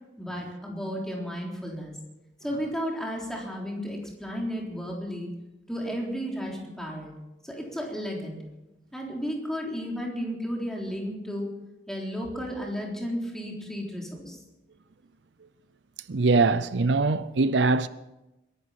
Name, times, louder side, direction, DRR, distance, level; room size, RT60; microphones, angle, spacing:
voice 1, 0.2-1.9 2.4-5.3 5.7-7.1 7.4-8.4 8.9-11.5 11.9-14.4, equal, 5° left, 3.7 m, -33 dB
voice 2, 16.1-17.9, right 3 dB, 75° right, 0.6 m, -22 dB
22.5 x 11.5 x 5.8 m
head